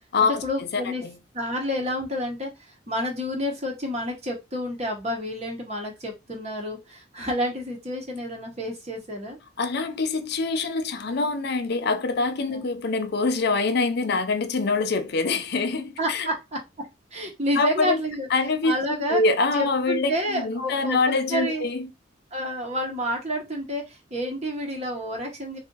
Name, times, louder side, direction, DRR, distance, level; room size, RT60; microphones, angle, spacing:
voice 1, 0.2-1.0 1.3-9.4 12.5-12.6 16.0-16.6 17.1-18.3 18.6-19.2 19.5-21.7 22.3-25.6, equal, 35° right, 0.9 m, -29 dB
voice 2, 0.7-1.2 9.6-16.3 17.6-18.0 18.3-18.7 19.1-21.9, left 3 dB, 55° left, 0.5 m, -24 dB
2.7 x 2.5 x 3.8 m
head